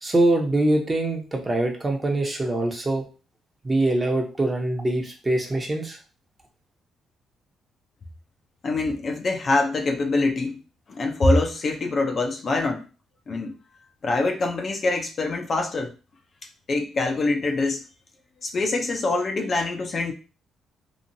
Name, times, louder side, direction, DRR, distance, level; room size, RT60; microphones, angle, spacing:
voice 1, 0.0-3.1 3.6-6.0, right 1 dB, 25° right, 2 dB, 0.8 m, -23 dB
voice 2, 8.6-10.6 10.9-12.9 13.3-13.5 14.0-15.9 16.7-17.8 18.4-20.1, left 2 dB, 45° left, 3 dB, 0.5 m, -24 dB
2.9 x 2.4 x 2.7 m, 0.33 s
cardioid pair, 85°, 0 cm